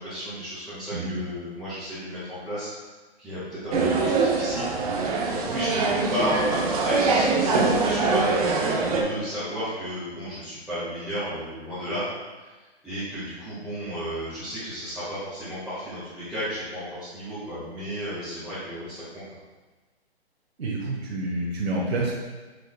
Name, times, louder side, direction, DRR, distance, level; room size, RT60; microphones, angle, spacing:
voice 1, 0.0-2.7 3.2-4.7 5.3-12.1 12.4-12.5 12.8-19.2, equal, 5° right, -14 dB, 1.4 m, -33 dB
voice 2, 0.9-1.2 3.7-3.8 20.6-22.1, right 2 dB, 70° right, -5 dB, 1.4 m, -28 dB
sound 1, 3.7-9.0, right 3 dB, 35° right, 0.8 m, -23 dB
6.8 x 6.4 x 2.2 m, 1.3 s
hypercardioid pair, 155°, 33 cm